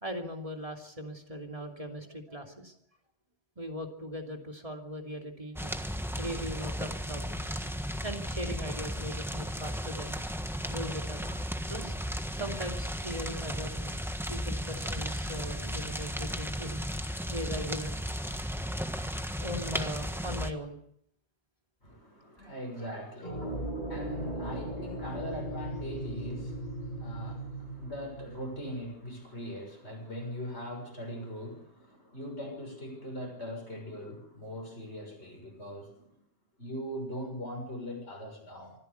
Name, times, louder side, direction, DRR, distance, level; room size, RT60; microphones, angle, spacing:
voice 1, 0.0-2.7 3.6-5.7 6.1-7.4 8.0-10.2 10.7-11.9 12.3-14.0 14.3-16.8 17.3-18.0 18.3-18.4 19.4-20.8 22.4-22.5, equal, 30° right, 2 dB, 2.9 m, -39 dB
sound 1, 5.6-20.5, equal, ahead, 1.4 m, -35 dB
voice 2, 21.8-36.1 36.6-38.7, equal, 85° left, 2 dB, 6.8 m, -41 dB
sound 2, 23.2-29.1, right 1 dB, 45° left, 5.7 m, -38 dB
25.0 x 15.0 x 8.2 m, 0.73 s
omnidirectional pair, 1.1 m